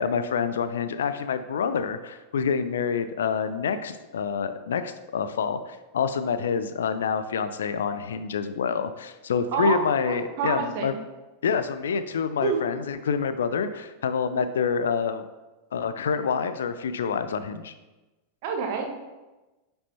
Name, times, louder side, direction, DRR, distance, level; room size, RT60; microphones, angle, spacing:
voice 1, 0.0-10.9 11.4-15.2 15.7-17.7, left 6 dB, 65° left, 11 dB, 0.4 m, -27 dB
voice 2, 9.5-11.0 12.4-12.6 18.4-18.9, right 5 dB, 50° right, 2 dB, 1.3 m, -28 dB
9.4 x 5.5 x 2.9 m, 1.1 s
figure-of-eight pair, 90°, 0 cm